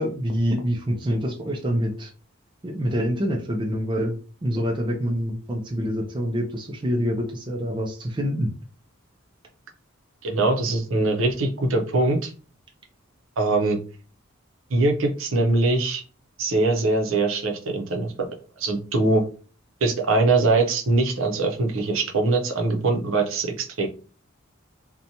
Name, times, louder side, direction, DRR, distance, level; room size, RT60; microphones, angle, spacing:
voice 1, 0.0-2.1 2.6-8.5, equal, 25° right, 1 dB, 0.4 m, -26 dB
voice 2, 10.2-12.3 13.4-13.8 14.7-16.0 16.4-18.1 18.6-19.3 19.8-23.9, right 3 dB, 70° right, 3 dB, 0.6 m, -22 dB
2.8 x 2.2 x 2.6 m, 0.37 s
head